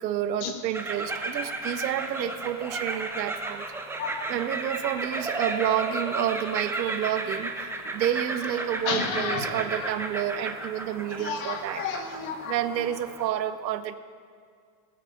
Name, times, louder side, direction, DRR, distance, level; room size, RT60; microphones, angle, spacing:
voice 1, 0.0-3.7 4.3-11.8 12.5-14.0, right 10 dB, 85° right, 12 dB, 1.1 m, -29 dB
sound 1, 0.7-13.3, right 2 dB, 5° right, 0.8 m, -34 dB
voice 2, 4.0-4.3 5.1-5.3 8.6-9.9 11.2-12.8, left 6 dB, 55° left, 5 dB, 2.1 m, -33 dB
19.5 x 8.5 x 6.6 m, 2.2 s
supercardioid pair, 145°, 50 cm